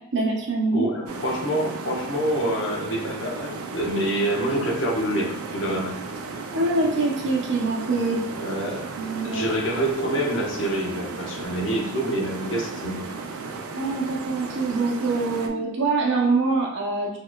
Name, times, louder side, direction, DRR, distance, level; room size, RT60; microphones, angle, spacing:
voice 1, 0.1-0.8 6.5-8.2 8.9-9.4 13.8-17.2, right 3 dB, 55° right, -2 dB, 0.8 m, -24 dB
voice 2, 0.7-6.0 8.4-8.9 9.2-13.0, right 1 dB, 60° left, -2 dB, 0.9 m, -26 dB
sound 1, 1.1-15.5, right 4 dB, 90° right, 0.5 m, -35 dB
4.1 x 3.1 x 2.3 m, 0.82 s
head